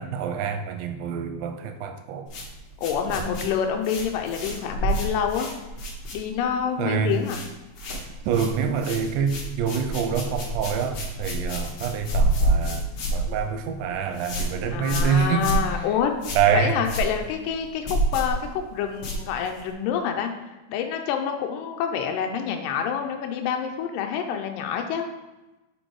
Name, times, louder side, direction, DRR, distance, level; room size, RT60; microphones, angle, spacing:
voice 1, 0.0-2.3 3.1-3.2 6.8-7.2 8.3-12.9 13.1-15.5 16.4-16.8, right 7 dB, 80° right, 7 dB, 2.0 m, -26 dB
sound 1, 2.3-6.6 6.9-7.5 7.7-19.7, right 1 dB, 55° left, 1.6 m, -29 dB
voice 2, 2.8-5.5 6.1-7.4 14.7-16.1 16.5-20.3 20.7-25.1, left 8 dB, 85° left, 4 dB, 2.3 m, -27 dB
6.4 x 5.3 x 4.7 m, 1.1 s
omnidirectional pair, 3.9 m